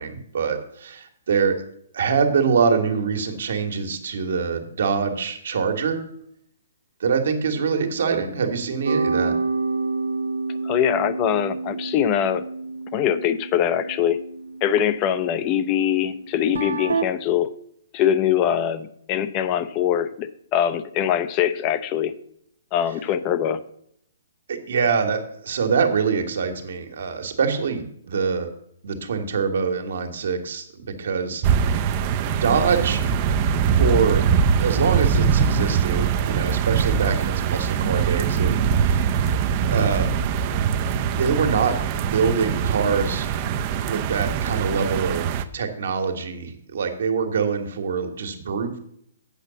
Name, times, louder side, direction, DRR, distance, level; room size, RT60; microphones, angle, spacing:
voice 1, 0.0-1.6 1.9-6.0 7.0-9.3 24.5-28.5 28.8-31.4 32.3-33.0 33.8-39.1 39.6-40.2 41.1-43.3 43.9-48.8, right 5 dB, 70° right, 5 dB, 1.7 m, -24 dB
sound 1, 8.8-17.0, right 3 dB, 90° right, 0.9 m, -29 dB
voice 2, 10.6-12.4 12.9-14.2 14.6-17.5 17.9-22.1 22.7-23.6, left 10 dB, 30° left, 13 dB, 0.6 m, -22 dB
sound 2, 31.4-45.4, right 7 dB, 35° right, 0.6 m, -22 dB
8.3 x 5.3 x 6.9 m, 0.71 s
hypercardioid pair, 145°, 0 cm